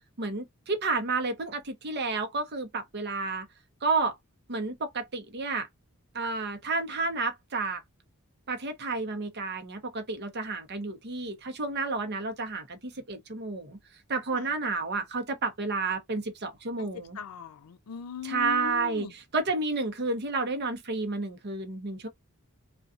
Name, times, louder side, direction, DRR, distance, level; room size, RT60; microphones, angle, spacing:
voice 1, 0.2-3.5 3.8-4.2 4.5-5.7 6.1-7.8 8.5-13.8 14.1-17.2 18.2-22.1, right 3 dB, 50° right, 0.7 m, -31 dB
voice 2, 17.2-19.1, left 7 dB, 90° left, 0.5 m, -39 dB
2.4 x 2.3 x 2.5 m
head